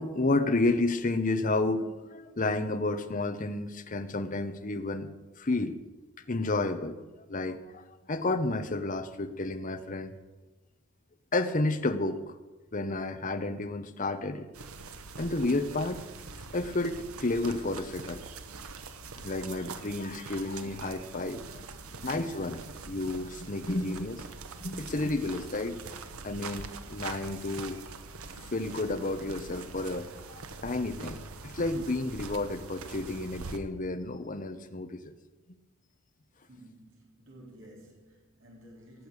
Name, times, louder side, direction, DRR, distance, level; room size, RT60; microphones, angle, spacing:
voice 1, 0.0-5.1 5.4-5.8 6.3-7.0 7.3-10.1 11.3-12.2 12.7-14.5 15.2-16.0 16.5-18.3 19.2-21.7 22.0-24.2 24.6-25.8 26.2-27.8 28.4-35.1, left 2 dB, 40° left, 9 dB, 1.0 m, -31 dB
sound 1, 14.5-33.6, right 4 dB, 85° right, 1.1 m, -43 dB
voice 2, 21.7-22.1 36.4-39.1, right 1 dB, 60° right, -2 dB, 3.8 m, -53 dB
17.5 x 6.7 x 8.2 m, 1.2 s
head